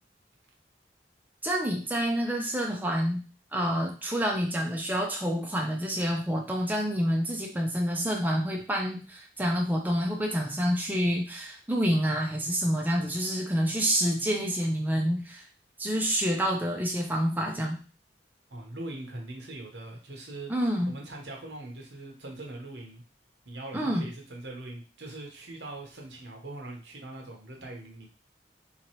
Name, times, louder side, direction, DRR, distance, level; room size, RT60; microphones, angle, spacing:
voice 1, 1.4-3.2 3.5-15.4 15.8-17.8 20.5-20.9 23.7-24.1, equal, 10° right, 0 dB, 0.5 m, -28 dB
voice 2, 18.5-23.0 23.4-28.1, right 2 dB, 75° right, 0 dB, 1.1 m, -41 dB
3.8 x 3.0 x 3.0 m, 0.35 s
head